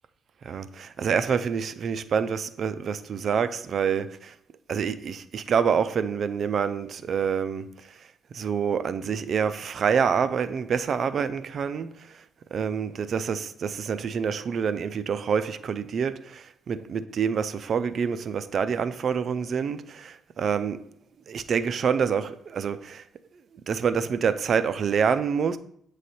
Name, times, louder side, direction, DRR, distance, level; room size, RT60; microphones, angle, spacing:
voice 1, 0.4-4.4 4.7-12.2 12.5-20.9 21.3-23.1 23.7-25.6, right 6 dB, 55° right, 0.4 m, -27 dB
7.6 x 3.2 x 4.2 m
cardioid pair, 90°, 0 cm